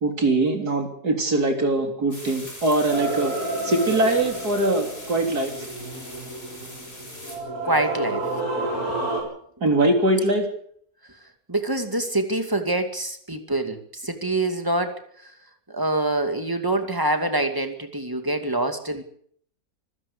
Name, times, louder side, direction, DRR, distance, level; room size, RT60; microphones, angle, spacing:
voice 1, 0.0-3.3 3.6-5.7 9.6-10.5, right 2 dB, 85° right, 4 dB, 4.0 m, -22 dB
sound 1, 2.1-7.4, left 1 dB, 40° left, 5.5 m, -40 dB
sound 2, 2.9-9.2, right 2 dB, 65° right, 7.4 m, -30 dB
voice 2, 7.6-8.2 11.5-15.3 15.7-19.0, right 2 dB, 15° right, 6 dB, 2.5 m, -25 dB
26.0 x 15.5 x 6.9 m, 0.62 s
omnidirectional pair, 1.6 m